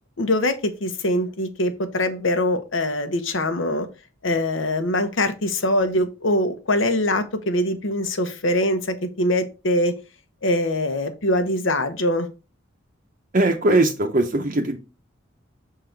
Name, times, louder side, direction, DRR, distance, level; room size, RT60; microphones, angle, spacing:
voice 1, 0.2-3.9 4.2-9.9 10.4-12.3, left 1 dB, 70° left, 9 dB, 0.9 m, -23 dB
voice 2, 13.3-14.8, right 2 dB, 40° right, 2 dB, 0.7 m, -20 dB
6.4 x 3.8 x 4.5 m, 0.30 s
head